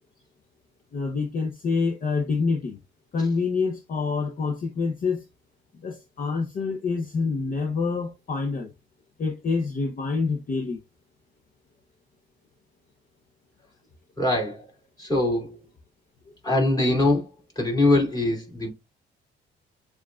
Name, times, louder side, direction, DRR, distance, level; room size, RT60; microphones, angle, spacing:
voice 1, 0.9-2.8 3.1-5.2 5.8-8.7 9.2-10.8, left 4 dB, 45° left, 0.8 m, -27 dB
voice 2, 14.2-14.7 15.0-15.6 16.4-17.3 17.6-18.7, left 2 dB, 20° left, 2.5 m, -22 dB
7.0 x 2.5 x 2.3 m
cardioid pair, 90°, 20 cm